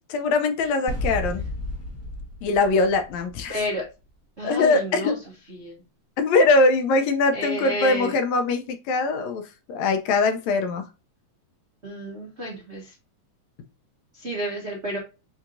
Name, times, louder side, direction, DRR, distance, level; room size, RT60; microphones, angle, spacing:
voice 1, 0.1-1.4 2.4-3.6 4.4-5.1 6.2-9.4 9.7-10.8, left 3 dB, 75° left, 7 dB, 1.8 m, -22 dB
sound 1, 0.9-3.8, left 2 dB, 15° left, 0.5 m, -32 dB
voice 2, 3.5-3.8 4.4-5.2 5.5-5.8 7.3-8.2 11.8-12.9 14.1-15.0, equal, 80° right, -3 dB, 0.6 m, -31 dB
7.3 x 2.8 x 2.5 m, 0.29 s
omnidirectional pair, 3.4 m